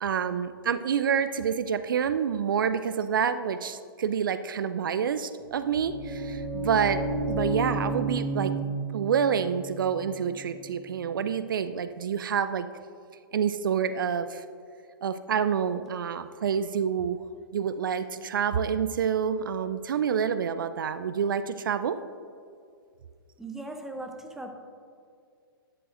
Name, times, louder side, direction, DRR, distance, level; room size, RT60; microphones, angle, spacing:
voice 1, 0.0-8.5 8.9-12.7 13.3-14.4 15.0-17.2 17.5-22.0, right 7 dB, 60° right, 12 dB, 0.4 m, -28 dB
sound 1, 5.4-11.3, right 2 dB, 30° right, 2.5 m, -32 dB
voice 2, 23.4-24.5, right 2 dB, 5° right, 4 dB, 0.7 m, -38 dB
12.0 x 10.5 x 2.5 m, 2.3 s
figure-of-eight pair, 115°, 12 cm